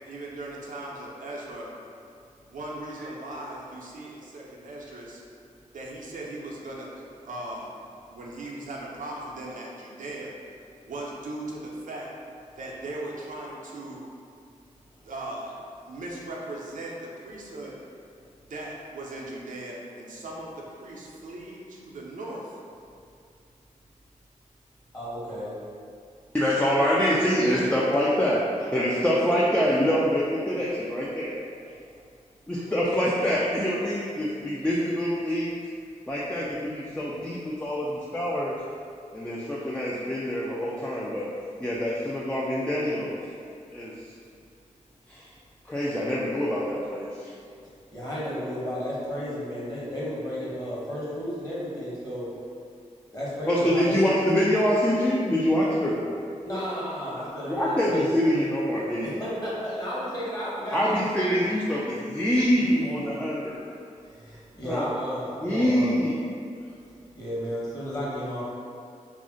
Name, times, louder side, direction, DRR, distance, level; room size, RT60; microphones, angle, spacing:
voice 1, 0.1-1.7 2.5-5.2 5.7-7.7 8.1-10.3 10.9-12.1 12.6-14.0 15.0-15.5 15.8-17.7 18.4-22.6 26.8-27.8, right 1 dB, 75° right, -4 dB, 0.5 m, -38 dB
voice 2, 24.9-25.6 47.9-52.3 53.1-54.0 56.4-58.5 59.0-61.0 61.3-61.5 62.6-63.2 64.0-66.0 67.2-68.4, equal, 30° left, -8 dB, 1.2 m, -33 dB
voice 3, 26.3-31.4 32.5-35.6 36.1-38.6 39.1-41.3 41.6-43.2 43.7-44.1 45.1-45.3 45.6-47.3 53.5-56.1 57.5-59.2 60.7-63.7 64.6-64.9 65.4-66.3, equal, 10° left, -5 dB, 0.4 m, -25 dB
2.4 x 2.0 x 3.7 m, 2.4 s
cardioid pair, 55°, 14 cm